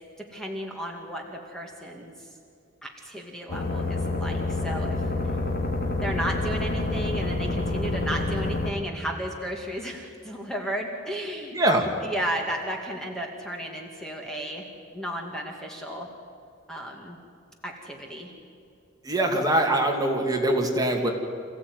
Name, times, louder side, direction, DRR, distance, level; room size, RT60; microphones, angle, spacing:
voice 1, 0.2-2.3 2.8-5.0 6.0-11.6 12.0-14.7 14.9-16.1 16.7-17.2 17.6-18.3, equal, 5° left, 1 dB, 2.1 m, -34 dB
sound 1, 3.5-8.7, left 2 dB, 50° left, 2.6 m, -28 dB
voice 2, 11.5-11.9 19.0-21.1, right 1 dB, 20° right, 2 dB, 2.5 m, -23 dB
27.0 x 15.5 x 9.5 m, 2.6 s
head